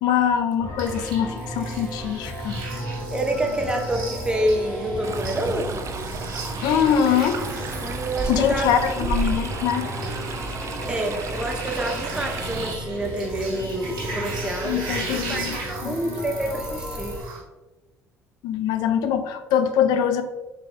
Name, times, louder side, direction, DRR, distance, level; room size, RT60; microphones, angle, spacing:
voice 1, 0.0-2.6 6.6-7.4 8.3-9.9 14.6-15.6 15.8-16.2 18.4-20.2, left 8 dB, 75° left, 9 dB, 0.4 m, -23 dB
sound 1, 0.6-17.2, equal, 45° left, 1.1 m, -34 dB
sound 2, 0.8-17.4, right 3 dB, 75° right, 1.4 m, -38 dB
voice 2, 3.1-5.9 7.8-8.7 9.0-9.1 10.9-17.2, right 1 dB, 10° right, 2 dB, 0.7 m, -27 dB
Stream, 5.0-12.7, right 5 dB, 45° right, 0.4 m, -33 dB
4.3 x 3.3 x 2.6 m, 1.1 s
supercardioid pair, 65°, 7 cm